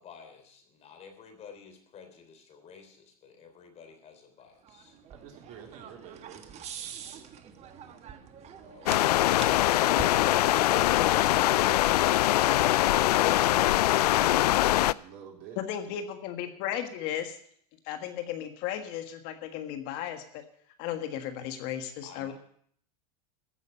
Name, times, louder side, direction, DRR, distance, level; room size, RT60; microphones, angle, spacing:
voice 1, 0.0-5.0 8.2-9.5 22.0-22.3, left 6 dB, 35° left, 6 dB, 3.3 m, -51 dB
sound 1, 4.6-13.2, right 7 dB, 35° right, 1.4 m, -45 dB
voice 2, 5.1-6.7 14.7-15.6, right 8 dB, 50° right, 1 dB, 3.6 m, -48 dB
sound 2, 8.8-14.9, left 15 dB, 85° left, 0.4 m, -23 dB
voice 3, 15.5-17.4 17.8-20.4 20.8-22.3, left 10 dB, 55° left, 7 dB, 1.6 m, -35 dB
15.0 x 6.5 x 8.7 m, 0.64 s
hypercardioid pair, 120°, 20 cm